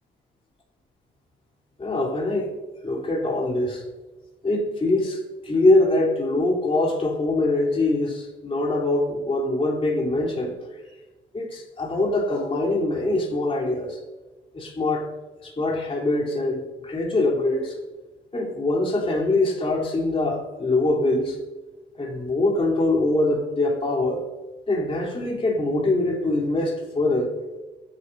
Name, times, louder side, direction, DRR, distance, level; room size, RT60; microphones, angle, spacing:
voice 1, 1.8-2.5 2.8-3.8 4.4-10.6 11.3-14.0 14.5-15.1 15.4-17.8 18.3-21.4 21.9-24.2 24.7-27.3, left 2 dB, 30° left, -2 dB, 3.3 m, -23 dB
23.0 x 10.5 x 2.7 m, 1.3 s
cardioid pair, 90°, 20 cm